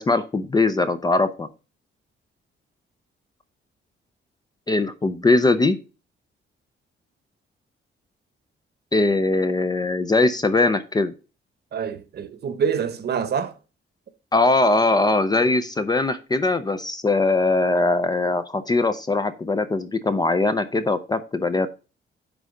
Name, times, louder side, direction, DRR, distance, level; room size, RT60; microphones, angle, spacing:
voice 1, 0.0-1.5 4.7-5.8 8.9-11.1 14.3-21.7, left 2 dB, 20° left, 0.5 m, -21 dB
voice 2, 11.7-13.5, right 7 dB, 50° right, 0.9 m, -26 dB
9.5 x 3.7 x 4.9 m
wide cardioid pair, 165°, 21 cm